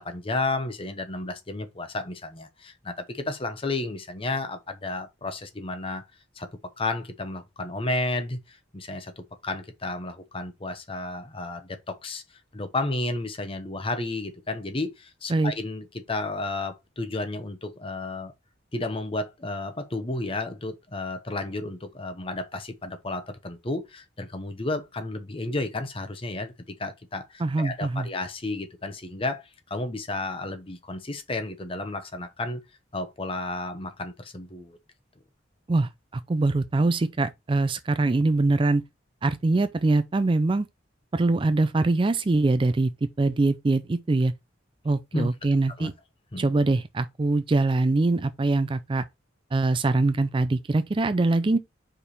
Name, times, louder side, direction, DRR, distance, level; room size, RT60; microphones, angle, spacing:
voice 1, 0.0-6.0 6.4-12.2 12.5-18.3 18.7-26.5 26.8-32.6 32.9-34.8 45.1-45.3 45.8-45.9 46.3-46.5, left 2 dB, 30° left, 1.0 m, -32 dB
voice 2, 27.4-28.1 35.7-38.8 39.2-40.7 41.1-44.3 44.8-45.9 46.4-49.0 49.5-51.6, right 2 dB, 25° right, 0.4 m, -23 dB
5.1 x 4.6 x 4.1 m
head